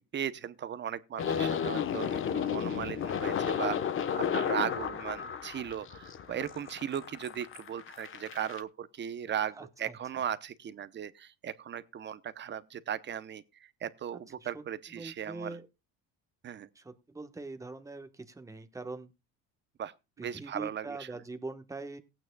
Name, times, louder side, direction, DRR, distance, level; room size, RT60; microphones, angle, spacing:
voice 1, 0.1-3.8 4.2-13.4 13.8-15.6 16.4-16.7 19.8-21.1, right 9 dB, 30° right, 0.8 m, -37 dB
sound 1, 1.2-8.6, left 8 dB, 35° left, 1.1 m, -33 dB
voice 2, 9.6-10.2 14.1-14.6 14.9-15.7 16.7-19.1 20.2-22.0, right 3 dB, 10° right, 1.2 m, -43 dB
18.0 x 9.0 x 2.3 m
cardioid pair, 130°, 35 cm